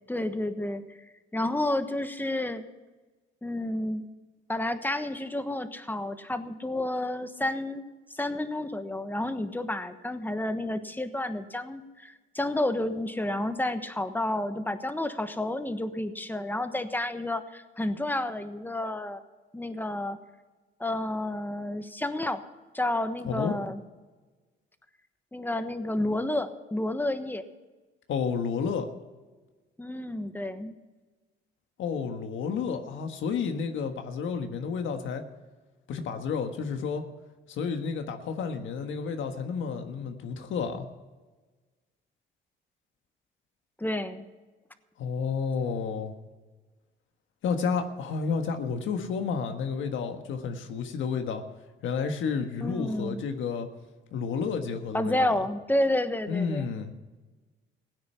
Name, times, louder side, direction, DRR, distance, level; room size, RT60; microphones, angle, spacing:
voice 1, 0.1-0.8 1.3-2.6 3.4-4.0 4.5-7.8 8.1-19.2 19.5-20.2 20.8-22.4 22.7-23.8 25.3-27.4 29.8-30.7 43.8-44.2 52.6-53.2 54.9-56.8, left 1 dB, 10° left, 10 dB, 1.2 m, -30 dB
voice 2, 28.1-28.9 31.8-35.2 35.9-37.0 37.5-40.9 45.0-46.1 47.4-51.4 51.8-53.7 54.1-55.3 56.3-56.9, left 5 dB, 80° left, 6 dB, 1.5 m, -31 dB
16.5 x 9.7 x 5.7 m, 1.3 s
cardioid pair, 90°, 20 cm